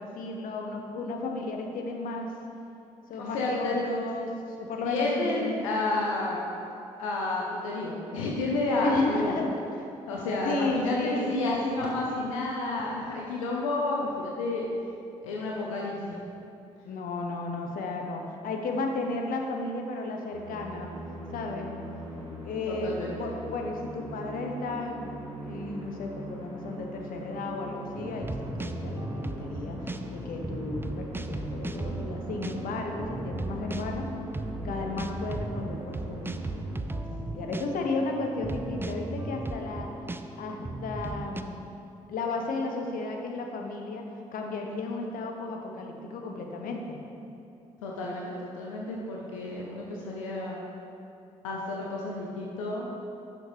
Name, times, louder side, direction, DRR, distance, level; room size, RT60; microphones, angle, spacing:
voice 1, 0.0-2.3 3.1-5.6 8.8-9.9 10.1-11.3 16.8-20.9 21.3-21.8 22.4-34.1 34.6-36.4 36.8-39.9 40.4-41.7 42.1-47.0, left 3 dB, 60° left, 2 dB, 1.0 m, -34 dB
voice 2, 3.2-3.8 4.8-6.4 7.0-9.4 10.1-14.7 15.2-16.2 22.7-23.3 47.8-50.6 51.4-52.8, left 2 dB, 85° left, -3 dB, 0.8 m, -30 dB
Musical instrument, 20.3-37.4, equal, 90° right, 1.0 m, -41 dB
sound 1, 27.9-41.4, right 2 dB, 15° right, 0.5 m, -36 dB
11.0 x 6.6 x 3.2 m, 2.7 s
hypercardioid pair, 45°, 16 cm